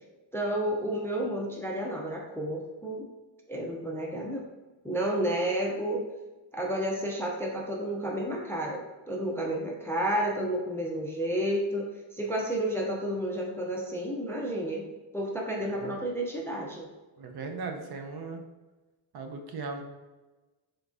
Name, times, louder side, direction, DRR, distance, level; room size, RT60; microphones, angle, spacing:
voice 1, 0.3-3.1 3.5-4.4 4.8-6.0 6.5-14.9 15.1-16.9, right 1 dB, 5° left, -1 dB, 0.4 m, -31 dB
voice 2, 15.7-16.0 17.2-18.4 19.1-19.8, right 4 dB, 55° right, 4 dB, 0.6 m, -38 dB
3.8 x 3.3 x 2.5 m, 1.2 s
cardioid pair, 120°, 47 cm